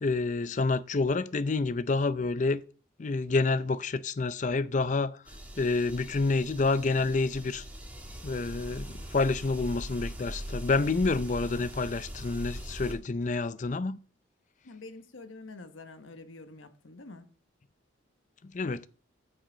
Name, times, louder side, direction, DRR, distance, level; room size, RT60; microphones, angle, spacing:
voice 1, 0.0-2.6 3.0-5.2 5.6-7.6 8.2-14.0 18.4-18.9, left 3 dB, 40° left, 0.5 m, -28 dB
sound 1, 5.2-12.9, equal, 10° right, 1.7 m, -41 dB
voice 2, 14.7-17.2, left 3 dB, 85° left, 1.2 m, -47 dB
14.0 x 5.6 x 3.9 m
head